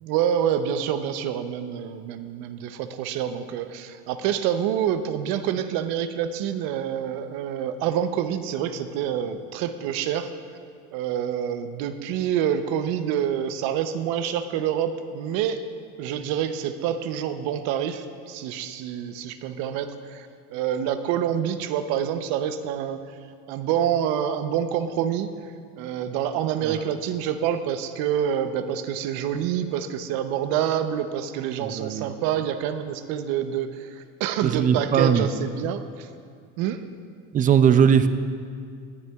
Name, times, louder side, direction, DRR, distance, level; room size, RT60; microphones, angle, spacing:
voice 1, 0.0-10.3 10.9-15.6 16.0-23.1 23.5-36.1 36.6-36.8, right 9 dB, 70° right, 10 dB, 0.7 m, -27 dB
voice 2, 31.6-32.1 34.4-35.3 37.3-38.1, right 8 dB, 25° right, 11 dB, 0.3 m, -19 dB
18.5 x 11.0 x 2.3 m, 2.3 s
supercardioid pair, 120°, 38 cm